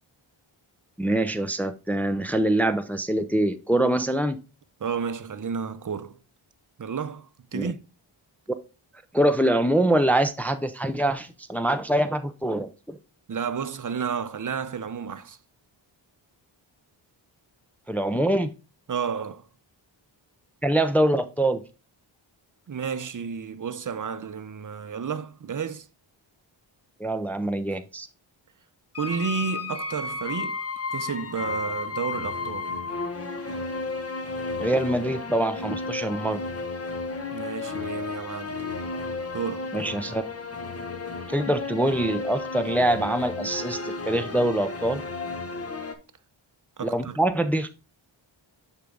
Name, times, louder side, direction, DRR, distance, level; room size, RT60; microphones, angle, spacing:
voice 1, 1.0-4.4 7.5-7.7 9.1-13.0 17.9-18.5 20.6-21.6 27.0-28.1 34.6-36.4 39.7-40.2 41.3-45.0 46.8-47.7, right 1 dB, 5° left, 0.5 m, -24 dB
voice 2, 4.8-6.2 6.8-7.8 13.3-15.4 18.9-19.5 22.7-25.9 29.0-30.6 30.9-32.7 37.3-38.6 39.3-39.8 46.8-47.2, right 6 dB, 40° right, 0.7 m, -31 dB
sound 1, 28.9-45.9, left 3 dB, 30° left, 1.1 m, -33 dB
6.9 x 4.6 x 3.8 m
cardioid pair, 40°, 50 cm